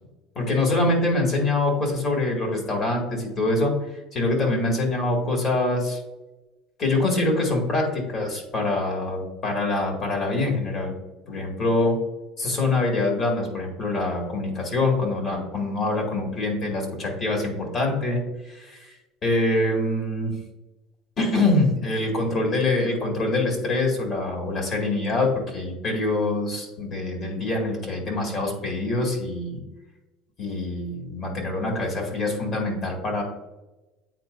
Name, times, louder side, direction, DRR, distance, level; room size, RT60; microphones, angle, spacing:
voice 1, 0.4-3.7 4.1-6.0 6.8-10.9 11.3-12.0 12.4-18.2 18.5-18.9 19.2-20.3 21.2-29.6 30.4-33.2, left 2 dB, 40° left, 0 dB, 2.2 m, -24 dB
8.9 x 4.2 x 2.6 m, 1.0 s
cardioid pair, 130°, 0 cm